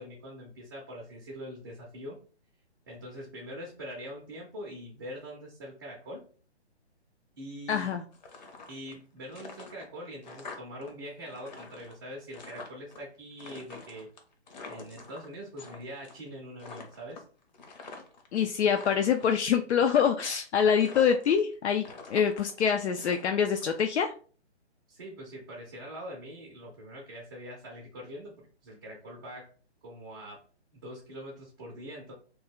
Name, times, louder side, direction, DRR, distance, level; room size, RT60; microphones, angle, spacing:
voice 1, 0.0-2.2 2.9-6.2 7.4-8.0 8.7-14.1 14.7-17.2 24.9-29.5 29.8-30.4 30.7-32.1, equal, 20° right, -3 dB, 0.4 m, -43 dB
voice 2, 7.7-8.0 18.3-24.1, left 7 dB, 75° left, 5 dB, 0.5 m, -25 dB
sound 1, 8.1-9.0 9.3-10.9 11.2-13.0 13.4-15.8 16.0-16.3 16.6-18.3 18.6-19.4 19.9-20.5 20.8-21.5 21.8-23.6, left 4 dB, 40° left, 0.7 m, -46 dB
2.9 x 2.1 x 3.5 m, 0.40 s
hypercardioid pair, 150°, 34 cm